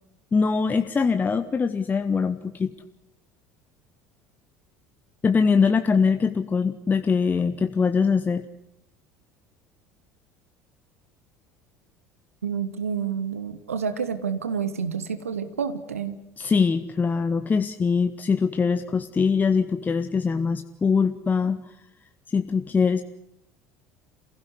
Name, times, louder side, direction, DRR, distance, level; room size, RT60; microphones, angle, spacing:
voice 1, 0.3-2.7 5.2-8.4 16.4-21.6 22.3-23.0, left 5 dB, 25° left, 9 dB, 1.1 m, -22 dB
voice 2, 12.4-16.2, right 6 dB, 75° right, 11 dB, 1.3 m, -29 dB
28.0 x 16.5 x 9.7 m, 0.80 s
figure-of-eight pair, 65°, 8 cm